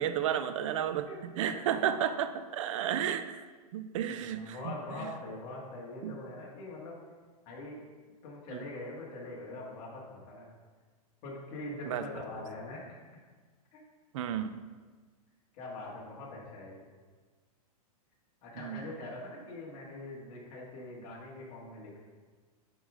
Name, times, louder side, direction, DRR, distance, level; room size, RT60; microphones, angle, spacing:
voice 1, 0.0-3.4 3.7-5.1 6.0-6.2 8.5-8.6 11.8-12.1 14.1-14.6 18.6-18.8, right 9 dB, 55° right, 11 dB, 0.6 m, -33 dB
voice 2, 1.1-1.6 4.1-7.0 7.5-7.8 8.2-10.5 11.2-13.0 13.7-13.8 15.5-16.9 18.4-22.0, left 2 dB, 35° left, -5 dB, 2.2 m, -43 dB
10.5 x 4.9 x 3.8 m, 1.4 s
hypercardioid pair, 150°, 20 cm